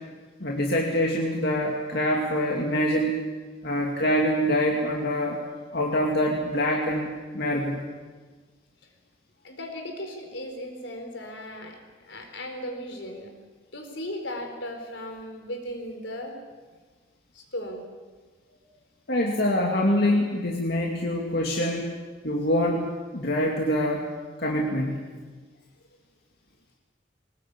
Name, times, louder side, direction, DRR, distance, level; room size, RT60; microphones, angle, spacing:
voice 1, 0.4-3.2 3.6-5.4 5.7-7.8 19.1-21.9 22.2-22.9 23.1-24.1 24.4-25.0, equal, 60° left, -1 dB, 2.5 m, -25 dB
voice 2, 9.4-11.8 12.0-13.3 13.7-16.4 17.3-17.9 18.5-18.6, left 1 dB, 80° left, 4 dB, 4.4 m, -36 dB
22.0 x 19.5 x 8.6 m, 1.4 s
head